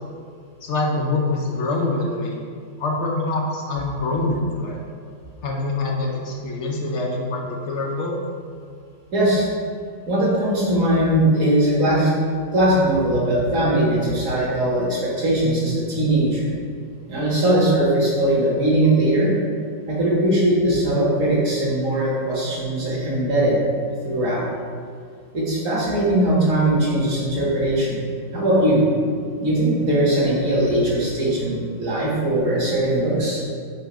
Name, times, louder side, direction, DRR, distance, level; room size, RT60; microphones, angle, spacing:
voice 1, 0.6-2.4 2.8-4.8 5.4-8.3, left 2 dB, 60° left, -1 dB, 0.7 m, -25 dB
voice 2, 9.1-9.5 10.1-12.1 12.5-16.5 17.1-19.3 19.9-23.6 24.0-24.5 25.3-28.0 28.3-28.9 29.4-33.4, right 1 dB, 45° right, -6 dB, 1.8 m, -20 dB
7.8 x 2.6 x 5.0 m, 2.1 s
omnidirectional pair, 2.0 m